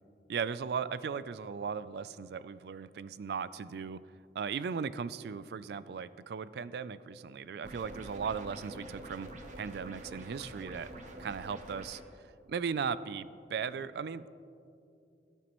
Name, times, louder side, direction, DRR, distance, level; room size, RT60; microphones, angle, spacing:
voice 1, 0.3-4.0 4.3-9.3 9.6-10.9 11.2-12.0 12.5-14.3, right 6 dB, 65° right, 16 dB, 0.3 m, -37 dB
sound 1, 7.6-12.0, right 1 dB, 45° right, 1.0 m, -46 dB
16.5 x 9.1 x 3.0 m, 2.5 s
head